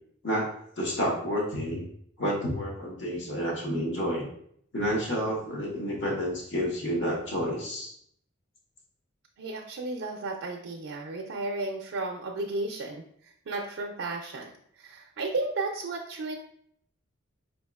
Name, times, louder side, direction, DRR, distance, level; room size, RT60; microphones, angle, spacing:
voice 1, 0.2-1.9 2.2-4.3 4.7-7.9, equal, 60° left, -2 dB, 1.0 m, -30 dB
voice 2, 9.4-16.3, right 2 dB, 75° right, 1 dB, 0.4 m, -34 dB
4.6 x 2.8 x 2.3 m, 0.67 s
head